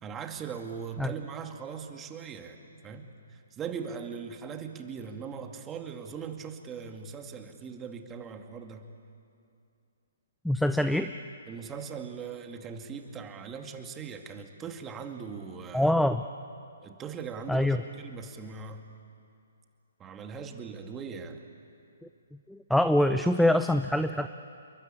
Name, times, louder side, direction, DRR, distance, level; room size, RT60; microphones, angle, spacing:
voice 1, 0.0-8.9 11.5-15.9 16.8-18.8 20.0-21.4, right 6 dB, 15° right, 5 dB, 2.2 m, -40 dB
voice 2, 10.4-11.1 15.7-16.3 17.5-17.8 22.5-24.3, left 1 dB, ahead, 9 dB, 0.6 m, -24 dB
30.0 x 22.5 x 8.6 m, 2.5 s
figure-of-eight pair, 130°, 0 cm